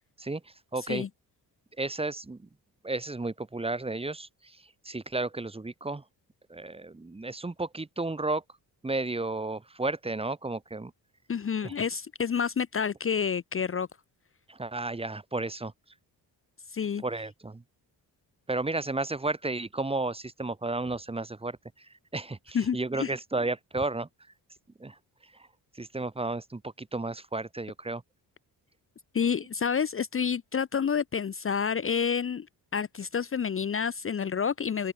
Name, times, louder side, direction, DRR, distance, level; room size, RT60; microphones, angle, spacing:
voice 1, 0.2-1.0 1.8-2.5 2.8-6.0 6.5-8.4 8.8-10.9 11.6-11.7 14.5-15.7 17.0-17.6 18.5-24.1 24.8-25.0 25.7-28.0, right 2 dB, 15° right, 1.3 m, -33 dB
voice 2, 11.3-13.9 16.7-17.0 22.5-23.1 29.1-32.5 32.7-34.9, left 6 dB, 35° left, 0.8 m, -29 dB
open air
cardioid pair, 120°, 39 cm